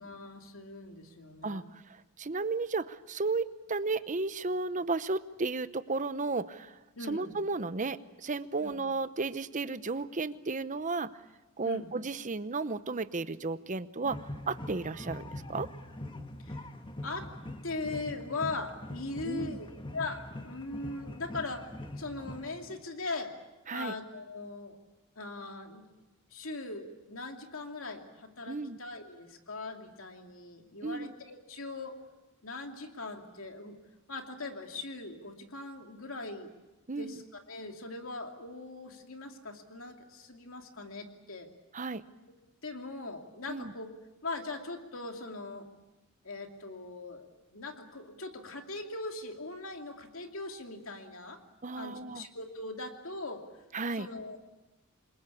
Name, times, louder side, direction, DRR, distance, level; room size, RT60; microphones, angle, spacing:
voice 1, 0.0-1.6 6.9-7.4 8.6-8.7 11.6-11.9 16.4-16.7 17.0-17.3 17.6-19.7 19.9-21.7 22.0-23.3 23.7-24.8 25.2-25.9 26.3-32.0 32.4-33.8 34.1-36.5 37.0-41.5 42.6-43.9 44.2-45.7 46.2-51.4 51.7-53.6 53.9-54.4, left 3 dB, 70° left, 4 dB, 2.7 m, -40 dB
voice 2, 1.4-11.1 11.6-15.7 19.2-19.6 23.7-23.9 28.5-28.8 30.8-31.1 36.9-37.2 41.7-42.0 43.5-43.7 51.6-52.3 53.7-54.1, right 3 dB, 35° right, 13 dB, 0.8 m, -34 dB
sound 1, 14.0-22.8, left 1 dB, 25° left, 1.5 m, -43 dB
27.5 x 22.0 x 8.5 m, 1.1 s
head